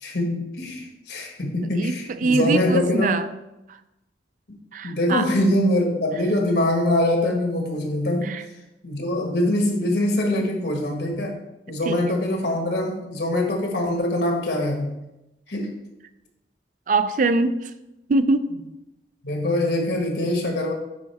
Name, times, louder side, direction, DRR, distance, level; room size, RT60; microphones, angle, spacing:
voice 1, 0.0-3.3 4.5-4.6 4.8-8.3 8.8-11.3 11.7-14.9 15.5-15.8 19.2-20.7, left 1 dB, 70° left, 1 dB, 1.5 m, -23 dB
voice 2, 2.2-3.3 4.7-5.3 8.2-8.4 11.8-12.2 16.9-17.5 18.1-18.5, right 3 dB, 45° right, 11 dB, 0.4 m, -22 dB
9.9 x 4.4 x 3.4 m, 0.95 s
head